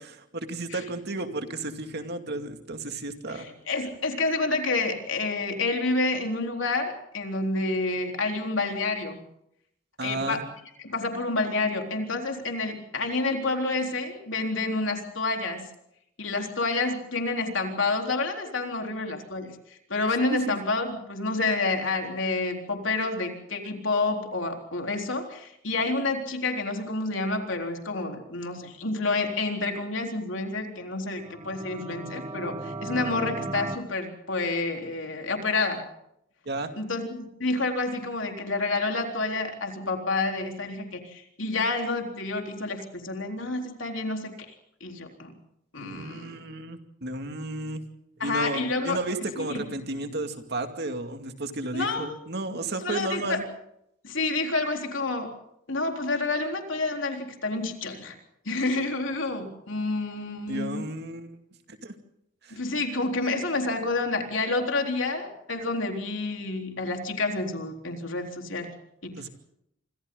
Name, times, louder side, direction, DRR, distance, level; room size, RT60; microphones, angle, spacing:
voice 1, 0.0-3.5 10.0-10.4 20.5-20.6 36.5-36.7 45.8-47.8 48.2-53.4 60.5-61.4 61.7-61.9 62.4-62.6 69.2-69.3, right 2 dB, 60° right, 6 dB, 2.4 m, -33 dB
voice 2, 3.3-9.2 10.0-10.5 10.8-15.7 16.2-35.8 36.8-44.3 44.8-45.3 45.7-46.3 48.2-49.0 49.4-49.6 51.7-52.2 52.8-53.4 54.0-55.3 55.7-58.2 58.5-60.8 62.5-68.7 69.0-69.3, left 3 dB, 75° left, 3 dB, 3.9 m, -29 dB
sound 1, 31.2-33.8, right 2 dB, 25° right, 1.3 m, -36 dB
26.0 x 26.0 x 3.9 m, 0.77 s
head